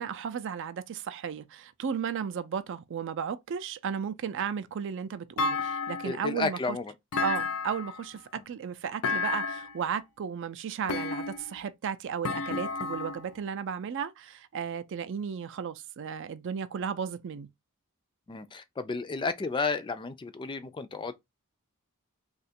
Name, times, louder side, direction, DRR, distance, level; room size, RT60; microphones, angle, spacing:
voice 1, 0.0-6.8 7.2-17.5, right 7 dB, 55° right, 0.4 m, -34 dB
Thump thud, 5.4-6.3 7.1-8.0 9.0-9.8 10.9-11.6 12.2-13.3, left 4 dB, 80° left, 0.5 m, -31 dB
voice 2, 6.0-6.9 18.3-21.1, left 4 dB, 20° left, 0.3 m, -32 dB
2.8 x 2.3 x 4.2 m
head